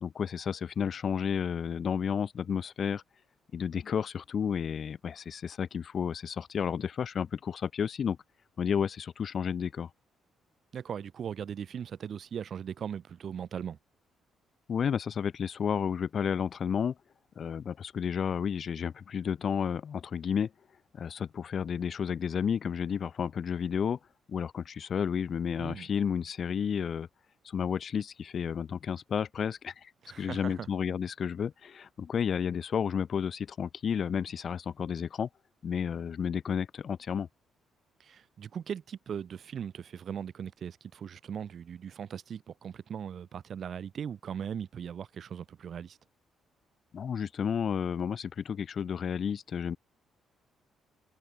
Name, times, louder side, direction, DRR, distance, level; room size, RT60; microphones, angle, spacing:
voice 1, 0.0-3.0 3.5-8.2 8.6-9.9 14.7-17.0 17.4-20.5 20.9-24.0 24.3-27.1 27.4-29.9 30.2-35.3 35.6-37.3 46.9-49.8, left 7 dB, 50° left, 0.6 m, -31 dB
voice 2, 10.7-13.8 25.6-25.9 30.0-30.7 38.0-46.0, right 8 dB, 55° right, 0.8 m, -39 dB
cardioid pair, 90°, 0 cm